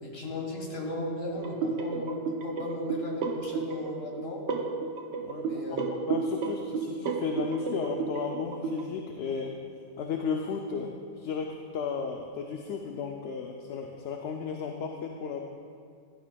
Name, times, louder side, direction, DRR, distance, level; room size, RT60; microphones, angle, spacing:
voice 1, 0.0-4.4 5.4-5.9, left 1 dB, 60° left, -1 dB, 1.9 m, -36 dB
sound 1, 1.3-8.9, right 4 dB, 85° right, 1.1 m, -32 dB
voice 2, 5.2-9.5 10.0-15.4, left 5 dB, 80° left, 2 dB, 0.9 m, -34 dB
12.5 x 11.5 x 2.3 m, 2.2 s
omnidirectional pair, 1.2 m